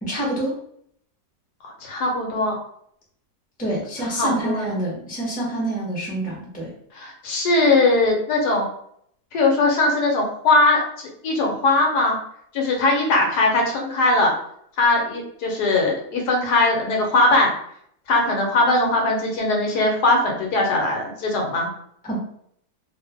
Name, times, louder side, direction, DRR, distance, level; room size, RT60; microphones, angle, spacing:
voice 1, 0.0-0.6 3.6-6.7 22.0-22.2, right 1 dB, 5° left, -5 dB, 0.7 m, -27 dB
voice 2, 1.6-2.6 4.2-4.7 6.9-8.7 9.3-12.2 12.5-14.3 14.8-17.5 18.1-21.7, left 2 dB, 75° left, 1 dB, 1.2 m, -20 dB
2.6 x 2.5 x 3.4 m, 0.68 s
omnidirectional pair, 1.8 m